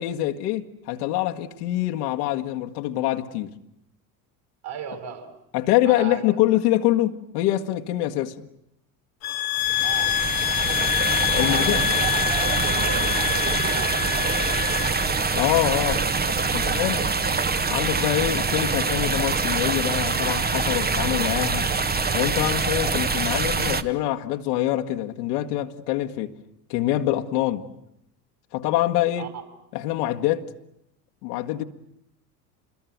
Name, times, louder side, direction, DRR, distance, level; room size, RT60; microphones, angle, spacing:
voice 1, 0.0-3.5 5.5-8.5 11.3-11.8 15.3-16.0 16.5-17.0 17.7-21.7 22.1-26.3 26.7-27.7 28.5-29.3 29.7-30.5 31.2-31.6, left 14 dB, 70° left, 1.9 m, -25 dB
voice 2, 4.6-5.3 5.8-6.2 9.8-10.2 10.6-10.9 11.4-15.0 15.6-16.1 16.5-17.1 29.2-29.4, right 8 dB, 50° right, 6.5 m, -36 dB
sound 1, 9.2-15.1, left 13 dB, 45° left, 1.1 m, -26 dB
sound 2, 9.6-23.8, right 4 dB, 20° right, 1.4 m, -25 dB
27.0 x 22.0 x 9.4 m
hypercardioid pair, 80°, 49 cm